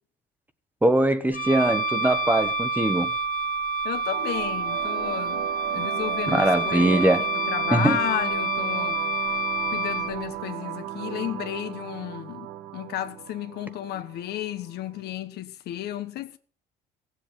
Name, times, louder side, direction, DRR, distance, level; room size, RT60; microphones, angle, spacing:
voice 1, 0.8-3.1 6.3-7.2 7.7-8.0, right 1 dB, 10° right, 1.2 m, -21 dB
Wind instrument woodwind instrument, 1.3-10.1, right 2 dB, 50° left, 2.0 m, -28 dB
voice 2, 3.8-9.0 9.7-16.4, left 12 dB, 70° left, 1.2 m, -33 dB
sound 1, 4.1-15.1, right 12 dB, 85° right, 2.0 m, -37 dB
16.0 x 7.8 x 6.8 m
cardioid pair, 110°, 17 cm